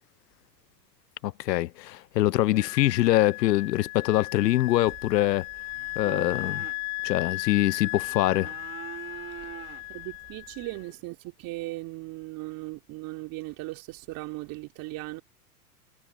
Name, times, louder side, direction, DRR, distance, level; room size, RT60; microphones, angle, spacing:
voice 1, 1.2-5.5 6.0-6.7 7.0-8.5, left 15 dB, 85° left, 0.6 m, -24 dB
Wind instrument woodwind instrument, 2.5-10.8, left 27 dB, 40° left, 0.6 m, -36 dB
sound 1, 4.8-10.8, right 11 dB, 25° right, 1.0 m, -45 dB
voice 2, 9.9-15.2, right 21 dB, 45° right, 3.5 m, -38 dB
hypercardioid pair, 110°, 48 cm